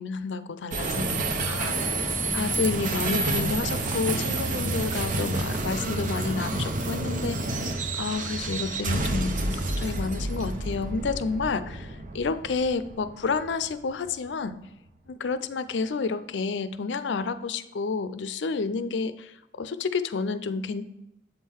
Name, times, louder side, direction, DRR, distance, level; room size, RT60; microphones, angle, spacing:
voice 1, 0.0-14.6 15.1-20.9, left 4 dB, 75° left, 12 dB, 0.4 m, -30 dB
sound 1, 0.7-14.1, right 2 dB, 45° right, 0.7 m, -29 dB
7.9 x 3.7 x 4.5 m, 0.89 s
head